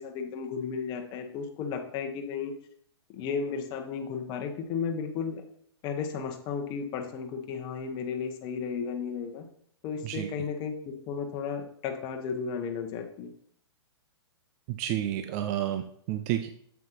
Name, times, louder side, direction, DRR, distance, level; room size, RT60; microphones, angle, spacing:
voice 1, 0.0-2.5 3.1-5.4 5.8-9.4 9.8-13.3, left 6 dB, 30° left, 4 dB, 1.0 m, -34 dB
voice 2, 14.7-16.5, right 12 dB, 35° right, 9 dB, 0.5 m, -30 dB
7.3 x 7.2 x 3.0 m, 0.65 s
hypercardioid pair, 115°, 14 cm